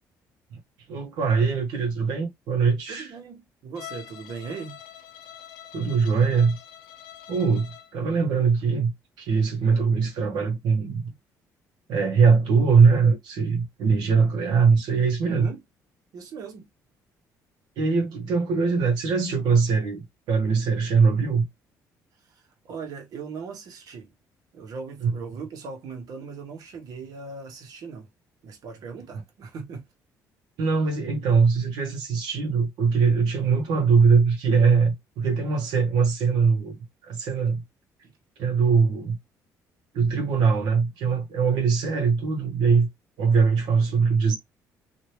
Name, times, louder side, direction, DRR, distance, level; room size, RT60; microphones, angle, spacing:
voice 1, 0.9-3.1 5.7-6.6 7.3-8.9 9.2-11.0 11.9-15.5 17.8-21.4 25.0-25.1 30.6-36.8 37.0-37.6 38.4-39.2 39.9-42.9 43.2-44.3, right 5 dB, 85° right, 1.1 m, -21 dB
voice 2, 2.9-4.8 11.1-11.2 15.2-15.6 16.1-16.7 22.3-24.1 24.5-28.1 28.4-29.8 38.0-38.1, right 5 dB, 65° right, 1.2 m, -38 dB
Bowed string instrument, 3.8-8.0, left 11 dB, 90° left, 0.6 m, -45 dB
2.9 x 2.7 x 3.2 m
cardioid pair, 105°, 7 cm